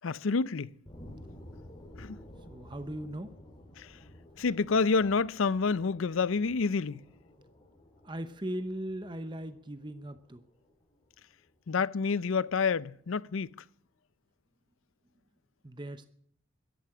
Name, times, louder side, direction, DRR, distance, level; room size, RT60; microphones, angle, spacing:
voice 1, 0.0-0.7 2.0-2.2 3.8-3.9 4.4-7.0 11.7-13.5, left 4 dB, 75° left, 0.5 m, -28 dB
sound 1, 0.9-11.9 12.3-12.4, left 1 dB, 20° left, 2.9 m, -53 dB
voice 2, 2.5-3.3 8.0-10.4 15.6-16.1, right 1 dB, 20° right, 0.8 m, -38 dB
13.0 x 11.0 x 7.8 m
head